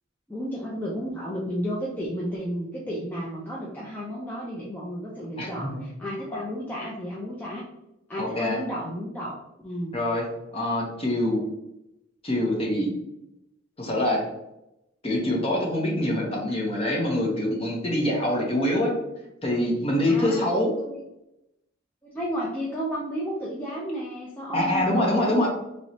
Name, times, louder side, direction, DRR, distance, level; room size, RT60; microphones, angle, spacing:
voice 1, 0.3-7.7 8.1-9.9 20.1-20.5 20.8-21.0 22.0-25.5, equal, 10° left, -6 dB, 0.4 m, -33 dB
voice 2, 5.4-5.8 8.2-8.6 9.9-10.2 10.5-11.5 12.2-12.9 13.8-14.3 15.0-18.9 19.4-20.7 24.5-25.5, left 1 dB, 30° left, -2 dB, 0.9 m, -25 dB
3.1 x 3.0 x 2.7 m, 0.88 s
head